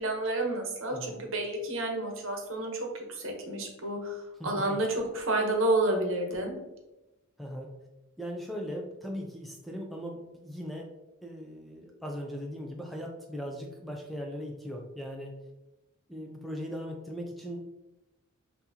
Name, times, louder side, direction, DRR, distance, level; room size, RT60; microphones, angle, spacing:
voice 1, 0.0-6.5, right 2 dB, 60° right, 2 dB, 0.9 m, -30 dB
voice 2, 0.9-1.2 4.4-4.8 7.4-7.7 8.2-10.9 11.2-15.3 16.1-17.6, equal, ahead, 0 dB, 0.4 m, -39 dB
5.8 x 2.8 x 2.8 m, 0.99 s
head